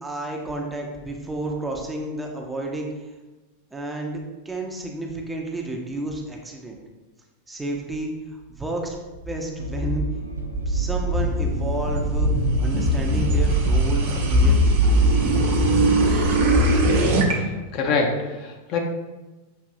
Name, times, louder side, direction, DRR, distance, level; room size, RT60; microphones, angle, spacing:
voice 1, 0.0-2.9 3.7-6.8 7.5-9.0 9.3-10.1 10.7-12.3 12.6-14.7, right 2 dB, 10° right, 0 dB, 0.6 m, -31 dB
sound 1, 9.3-17.3, right 1 dB, 55° right, 0.8 m, -20 dB
sound 2, 9.6-14.7, equal, 90° right, 0.3 m, -35 dB
voice 2, 17.4-18.8, left 4 dB, 40° left, 1 dB, 0.6 m, -25 dB
6.2 x 2.6 x 2.6 m, 1.2 s
figure-of-eight pair, 90°, 0 cm